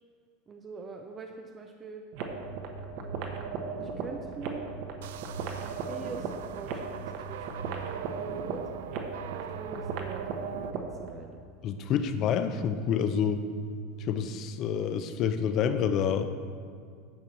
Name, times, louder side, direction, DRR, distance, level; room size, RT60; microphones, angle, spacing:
voice 1, 0.5-2.0 2.9-4.7 5.6-8.6 9.3-11.4, right 4 dB, 20° right, 3 dB, 0.5 m, -44 dB
sound 1, 2.1-11.1, right 5 dB, 55° right, 1.0 m, -37 dB
sound 2, 5.0-10.7, right 11 dB, 85° right, 0.3 m, -43 dB
voice 2, 11.6-13.4 14.0-16.2, left 7 dB, 35° left, 9 dB, 0.6 m, -28 dB
10.5 x 4.6 x 7.2 m, 2.2 s
supercardioid pair, 160°, 0 cm